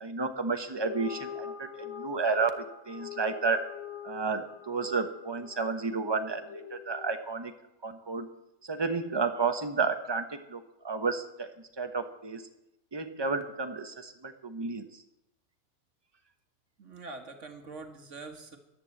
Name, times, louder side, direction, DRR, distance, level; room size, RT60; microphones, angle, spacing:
voice 1, 0.0-3.7 4.0-7.5 7.8-8.3 8.7-11.5 11.8-12.5 12.9-14.9, right 4 dB, 20° right, 7 dB, 0.9 m, -31 dB
sound 1, 0.7-7.3, left 8 dB, 65° left, 1.4 m, -44 dB
voice 2, 16.8-18.6, right 3 dB, 55° right, 4 dB, 2.0 m, -44 dB
11.5 x 10.5 x 7.8 m, 0.88 s
omnidirectional pair, 1.5 m